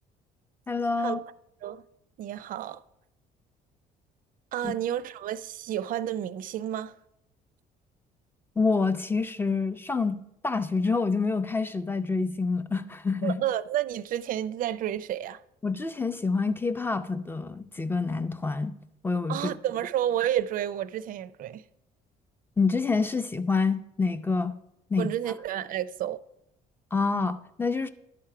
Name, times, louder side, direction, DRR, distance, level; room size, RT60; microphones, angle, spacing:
voice 1, 0.7-1.2 4.6-4.7 8.6-10.2 10.4-13.4 15.6-18.7 19.0-19.5 22.6-24.6 24.9-25.1 26.9-27.9, left 4 dB, 10° left, 0.5 m, -27 dB
voice 2, 2.2-2.8 4.5-6.9 13.2-15.4 19.3-21.6 25.0-26.2, right 11 dB, 55° right, 0.4 m, -30 dB
11.5 x 4.4 x 4.8 m
cardioid pair, 110°, 17 cm